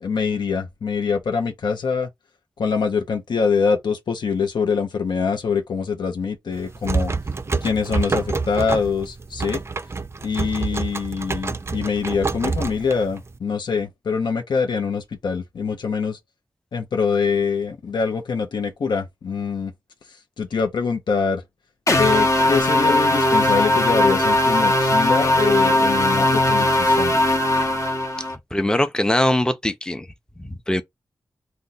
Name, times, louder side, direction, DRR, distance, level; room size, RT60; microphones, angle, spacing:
voice 1, 0.0-2.1 2.6-7.1 7.6-9.6 10.2-16.2 16.7-19.7 20.4-21.4 22.0-27.2, left 5 dB, 75° left, 0.6 m, -24 dB
sound 1, 6.5-13.4, right 4 dB, 35° right, 0.4 m, -27 dB
sound 2, 21.9-28.4, left 1 dB, 40° left, 0.9 m, -19 dB
voice 2, 28.5-30.1 30.4-30.8, left 1 dB, 10° left, 0.6 m, -21 dB
2.6 x 2.2 x 3.9 m
cardioid pair, 45°, 8 cm